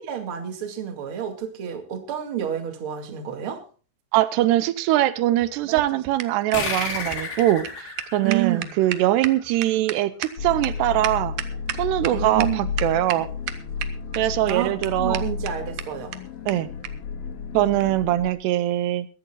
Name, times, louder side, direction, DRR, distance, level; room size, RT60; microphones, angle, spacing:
voice 1, 0.0-3.6 8.2-8.7 12.1-12.7 14.5-16.2, right 10 dB, 40° right, 6 dB, 2.4 m, -29 dB
voice 2, 4.1-11.3 11.8-13.3 14.2-15.2 16.5-16.7 17.5-19.1, right 14 dB, 85° right, 14 dB, 2.9 m, -22 dB
sound 1, 5.4-12.1 12.4-12.5 12.8-13.2 13.5-14.2 14.5-14.6 14.8-14.9 15.1-15.2 15.5-15.6 15.8-15.9 16.1-16.2 16.5-16.6 16.8-16.9 17.8-17.9, right 12 dB, 70° right, 2.3 m, -32 dB
sound 2, 6.5-9.6, left 4 dB, 80° left, 6.1 m, -32 dB
sound 3, 10.4-18.3, left 5 dB, 60° left, 2.7 m, -32 dB
22.0 x 15.0 x 2.3 m, 0.37 s
omnidirectional pair, 4.8 m